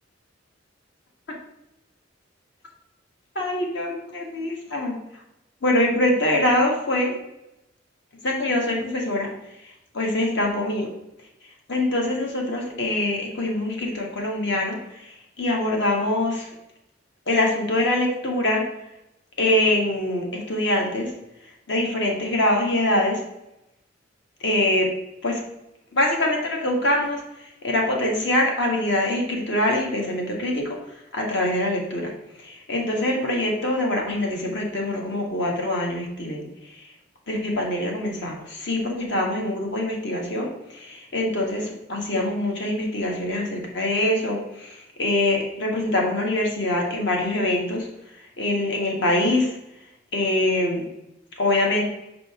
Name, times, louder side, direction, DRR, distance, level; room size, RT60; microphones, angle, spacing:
voice 1, 3.3-5.0 5.6-7.1 8.2-9.3 9.9-10.9 11.7-16.5 17.3-18.6 19.4-21.1 21.7-23.2 24.4-24.9 25.2-25.4 25.9-30.8 31.1-32.1 32.4-36.8 37.3-47.9 48.4-49.5 50.1-50.8 51.4-51.8, left 1 dB, 65° left, 0 dB, 1.4 m, -24 dB
5.4 x 5.2 x 3.6 m, 0.88 s
head